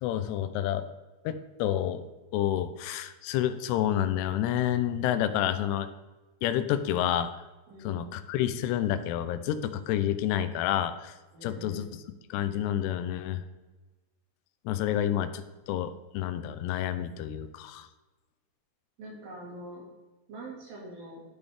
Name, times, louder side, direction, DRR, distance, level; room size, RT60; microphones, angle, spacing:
voice 1, 0.0-0.9 1.3-2.1 2.3-5.9 6.4-7.4 7.8-11.1 11.4-11.9 12.3-13.4 14.7-17.9, left 11 dB, 85° left, 11 dB, 2.7 m, -29 dB
voice 2, 7.7-8.0 11.3-11.9 19.0-19.9 20.3-21.2, right 1 dB, 60° right, -2 dB, 3.4 m, -44 dB
12.5 x 5.3 x 3.4 m, 1.2 s
omnidirectional pair, 4.8 m